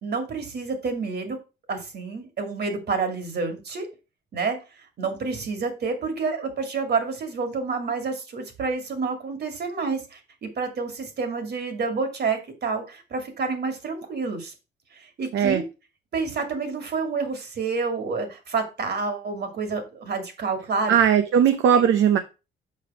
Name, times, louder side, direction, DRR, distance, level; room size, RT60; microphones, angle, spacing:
voice 1, 0.0-1.4 1.7-3.9 4.3-4.6 5.0-14.5 14.9-15.6 16.1-20.9 21.7-21.8, right 4 dB, 55° right, 2.3 m, -29 dB
voice 2, 20.9-22.2, right 8 dB, 75° right, 0.7 m, -18 dB
6.7 x 5.0 x 4.8 m
cardioid pair, 90°, 20 cm